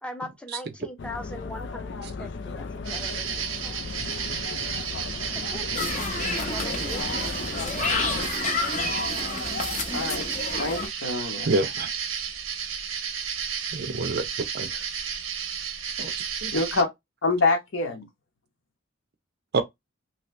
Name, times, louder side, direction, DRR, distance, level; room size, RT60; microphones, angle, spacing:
voice 1, 0.0-1.9 2.2-3.8 5.5-5.8 6.3-7.1, left 1 dB, 5° left, 0.6 m, -40 dB
sound 1, 1.0-8.3, left 4 dB, 60° left, 0.4 m, -36 dB
sound 2, 2.8-16.8, right 7 dB, 85° right, 0.8 m, -32 dB
sound 3, 5.7-10.9, left 3 dB, 35° left, 0.8 m, -30 dB
voice 2, 9.9-11.5 16.5-16.9 17.2-18.1, left 3 dB, 75° left, 0.9 m, -26 dB
voice 3, 11.4-11.9 13.7-14.2 14.5-14.8 16.0-16.1 16.4-16.5 19.5-19.6, right 2 dB, 55° right, 0.6 m, -27 dB
2.9 x 2.8 x 3.1 m
head